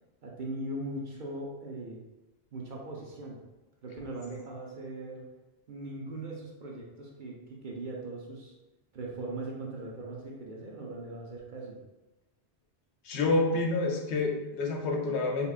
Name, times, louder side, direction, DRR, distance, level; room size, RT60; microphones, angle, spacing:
voice 1, 0.2-2.0 2.5-3.4 3.8-5.3 5.7-8.5 8.9-11.8, right 2 dB, 55° right, -2 dB, 0.7 m, -39 dB
voice 2, 13.1-15.5, left 3 dB, 80° left, 1 dB, 0.9 m, -28 dB
5.3 x 2.3 x 2.4 m, 1.0 s
omnidirectional pair, 1.1 m